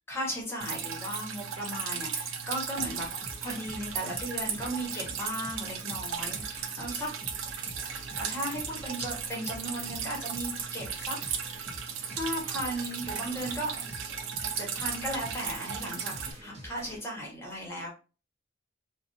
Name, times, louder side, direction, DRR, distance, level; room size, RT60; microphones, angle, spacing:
voice 1, 0.1-3.1 3.4-7.1 8.1-11.5 12.1-14.0 14.3-17.9, equal, 15° left, -2 dB, 0.8 m, -36 dB
Drip, 0.6-16.3, right 7 dB, 85° right, 0.4 m, -36 dB
sound 1, 2.8-17.0, equal, 30° right, 0.7 m, -47 dB
2.5 x 2.1 x 2.6 m, 0.34 s
head